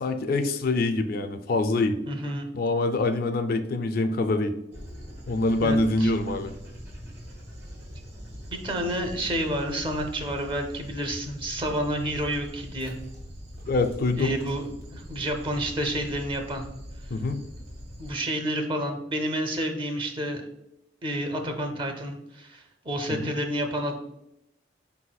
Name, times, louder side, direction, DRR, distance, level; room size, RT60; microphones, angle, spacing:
voice 1, 0.0-2.0 2.5-4.5 5.3-6.5 13.6-14.4 17.1-17.4 23.1-23.3, left 2 dB, 50° left, 8 dB, 0.3 m, -25 dB
voice 2, 2.1-2.5 5.6-6.1 8.5-12.9 14.2-16.6 18.0-20.4 21.0-24.0, right 1 dB, 30° right, 4 dB, 0.6 m, -30 dB
Dog, 4.7-18.1, equal, 60° right, 1.4 m, -42 dB
4.3 x 4.1 x 2.3 m, 0.86 s
head